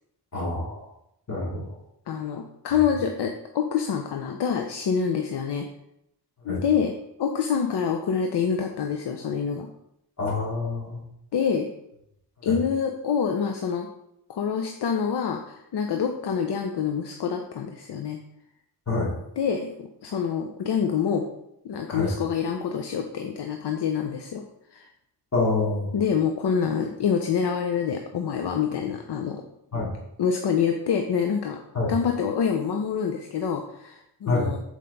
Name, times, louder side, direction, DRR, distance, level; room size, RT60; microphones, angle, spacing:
voice 1, 0.3-0.8 1.3-1.6 6.4-6.6 10.2-11.0 12.4-12.6 18.9-19.1 21.9-22.1 25.3-25.9 29.7-29.9 31.7-31.9 34.3-34.5, left 3 dB, 40° left, -5 dB, 3.0 m, -26 dB
voice 2, 2.1-5.7 6.4-6.9 7.2-9.7 11.3-11.7 12.4-13.9 14.3-18.2 19.4-21.3 21.6-24.4 24.7-24.9 25.9-29.4 30.2-34.6, left 7 dB, 65° left, 4 dB, 0.7 m, -26 dB
7.7 x 4.9 x 4.0 m, 0.80 s
wide cardioid pair, 100°, 43 cm